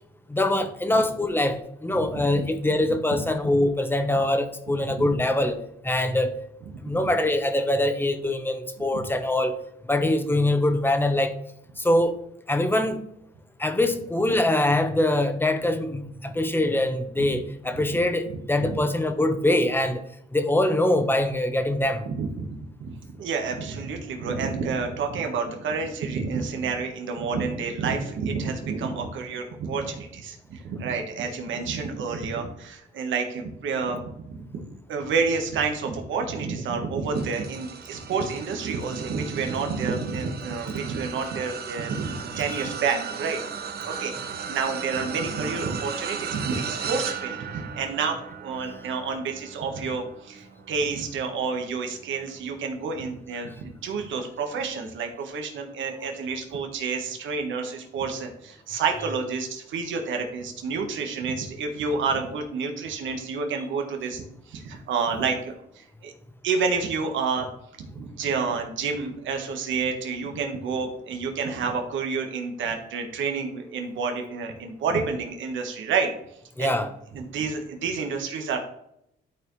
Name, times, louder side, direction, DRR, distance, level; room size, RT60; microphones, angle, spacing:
voice 1, 0.3-5.6 5.8-6.3 6.8-9.5 9.9-11.4 11.8-12.1 12.5-13.0 13.6-20.0 20.3-22.0 48.6-48.7 76.6-76.9, left 1 dB, 10° left, 1.0 m, -23 dB
voice 2, 4.7-5.0 7.0-7.1 17.2-17.3 18.6-18.8 22.1-43.4 43.8-66.1 66.4-67.5 67.8-76.1 76.6-76.8 77.1-78.6, right 5 dB, 75° right, 1.4 m, -29 dB
sound 1, 37.1-52.6 53.2-53.4 54.7-54.8, right 6 dB, 55° right, 0.8 m, -37 dB
12.0 x 4.5 x 3.2 m
cardioid pair, 90°, 20 cm